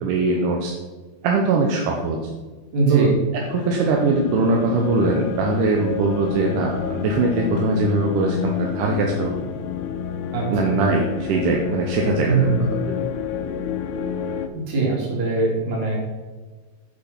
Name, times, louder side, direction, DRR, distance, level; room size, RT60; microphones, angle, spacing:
voice 1, 0.0-0.7 1.2-2.2 2.9-3.1 3.5-9.3 10.5-12.5, right 3 dB, 85° right, 0 dB, 2.4 m, -21 dB
voice 2, 2.7-3.1 10.3-10.5 12.3-12.7 14.5-16.0, right 4 dB, 65° right, -3 dB, 3.8 m, -21 dB
sound 1, 3.4-14.5, left 8 dB, 85° left, 2.1 m, -29 dB
7.8 x 7.0 x 5.8 m, 1.3 s
omnidirectional pair, 3.6 m